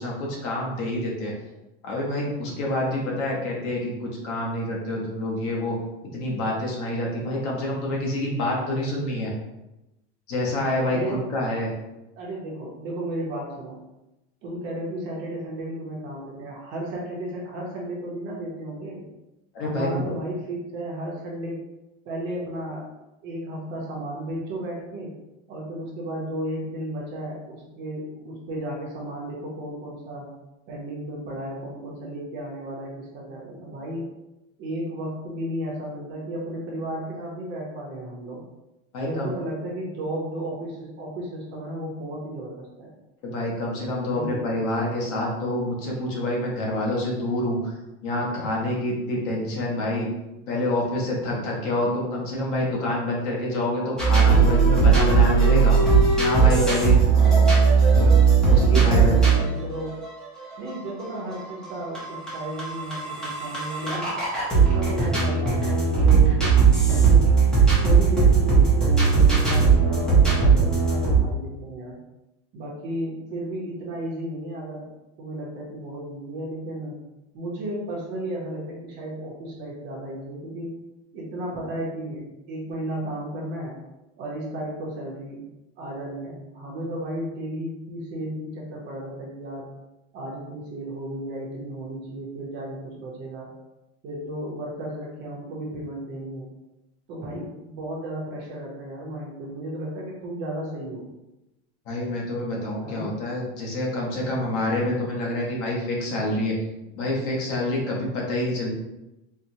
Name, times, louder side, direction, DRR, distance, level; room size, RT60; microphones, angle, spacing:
voice 1, 0.0-1.3 1.8-5.8 6.0-9.3 10.3-11.7 19.5-20.1 38.9-39.3 43.2-47.7 48.0-50.1 50.5-55.8 56.2-57.0 57.3-57.5 58.0-58.1 58.5-59.1 101.9-106.6 106.9-108.7, left 1 dB, 40° left, -3 dB, 0.9 m, -27 dB
voice 2, 10.9-11.2 12.2-13.8 14.4-19.0 19.6-21.6 22.0-22.9 23.2-25.1 25.5-30.3 30.7-34.1 34.6-38.4 39.0-42.9 44.1-44.5 57.1-57.6 58.4-60.0 60.6-64.2 64.5-66.4 66.9-67.3 67.8-72.0 72.5-74.9 75.2-76.9 77.3-80.8 81.1-83.8 84.2-85.4 85.8-89.7 90.1-93.5 94.0-96.5 97.1-101.1 102.8-103.1, right 1 dB, 35° right, -3 dB, 0.7 m, -34 dB
sound 1, 54.0-71.2, right 5 dB, ahead, 0.5 m, -18 dB
4.3 x 2.1 x 2.7 m, 0.96 s
supercardioid pair, 170°, 35 cm